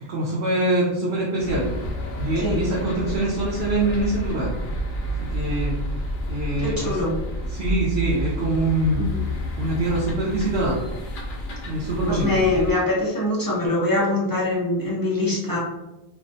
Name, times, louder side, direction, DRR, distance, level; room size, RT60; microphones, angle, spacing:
voice 1, 0.1-1.7 2.2-4.5 5.2-5.8 6.3-7.0 7.5-9.0 9.6-10.8 11.7-12.4, right 2 dB, 70° right, -5 dB, 0.8 m, -24 dB
sound 1, 1.4-12.7, equal, 80° left, 0.8 m, -29 dB
voice 2, 2.4-2.7 6.6-7.2 8.9-9.2 12.1-15.6, left 2 dB, 35° left, -5 dB, 0.4 m, -23 dB
2.5 x 2.1 x 2.5 m, 0.99 s
omnidirectional pair, 1.1 m